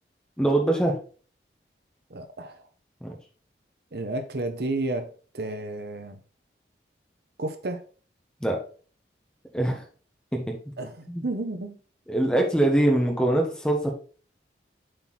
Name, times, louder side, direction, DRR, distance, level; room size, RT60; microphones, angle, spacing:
voice 1, 0.4-1.0 3.0-3.1 8.4-8.6 9.5-9.8 10.3-10.6 11.1-11.2 12.1-13.9, right 1 dB, 5° left, 1.5 m, -23 dB
voice 2, 2.1-2.6 3.9-6.2 7.4-7.9 10.8-11.8, right 2 dB, 65° right, 0.9 m, -32 dB
7.7 x 4.3 x 4.1 m
head